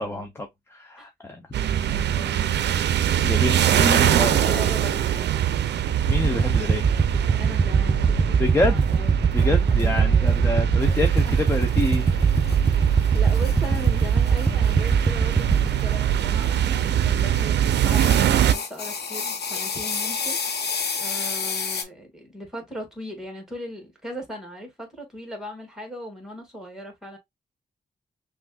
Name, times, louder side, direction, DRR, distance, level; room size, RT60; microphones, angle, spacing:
voice 1, 0.0-1.4 3.2-4.6 6.1-6.9 8.4-8.8 9.3-12.1, left 2 dB, 15° left, 0.7 m, -27 dB
sound 1, 1.5-18.5, right 10 dB, 85° right, 0.5 m, -23 dB
voice 2, 1.9-2.8 3.7-5.7 7.3-11.5 13.1-27.2, equal, 5° right, 2.0 m, -38 dB
sound 2, 6.0-15.7, right 5 dB, 30° right, 0.6 m, -22 dB
sound 3, 10.8-17.4 17.8-21.8, left 5 dB, 75° left, 1.1 m, -32 dB
6.0 x 2.6 x 2.3 m
wide cardioid pair, 115°, 17 cm